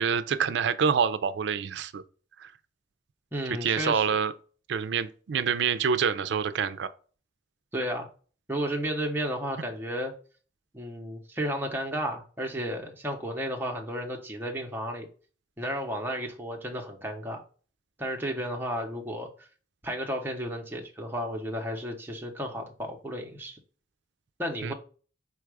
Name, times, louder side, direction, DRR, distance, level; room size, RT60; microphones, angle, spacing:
voice 1, 0.0-2.0 2.4-2.5 3.6-4.3 4.7-6.9 24.6-24.7, right 6 dB, 65° right, 0.4 m, -26 dB
voice 2, 3.3-4.1 7.7-8.1 8.5-10.1 10.7-15.1 15.6-17.4 18.0-19.5 19.8-23.6 24.4-24.7, equal, 10° right, 0.6 m, -33 dB
4.5 x 2.3 x 4.7 m
head